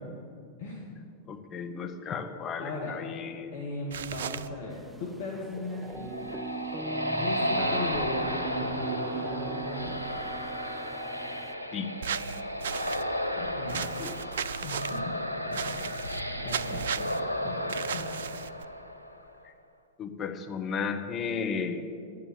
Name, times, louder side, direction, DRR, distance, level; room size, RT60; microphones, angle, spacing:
voice 1, 1.3-3.5 11.7-11.9 13.8-14.1 20.0-21.9, left 6 dB, 30° left, 5 dB, 1.2 m, -34 dB
voice 2, 2.6-3.0 3.5-6.1 7.2-10.1 13.4-13.9 14.6-15.2 15.5-15.8 16.4-17.1 17.4-18.1, left 2 dB, 60° left, -2 dB, 2.1 m, -37 dB
sound 1, 3.9-4.5 12.0-13.0 13.7-15.0 15.5-16.2 16.5-17.2 17.7-18.7, right 7 dB, 65° right, 0.5 m, -35 dB
sound 2, 4.7-11.5, right 4 dB, 10° right, 0.5 m, -40 dB
sound 3, 5.7-19.3, equal, 85° right, 1.0 m, -33 dB
10.5 x 9.6 x 9.7 m, 2.3 s
figure-of-eight pair, 90°, 0 cm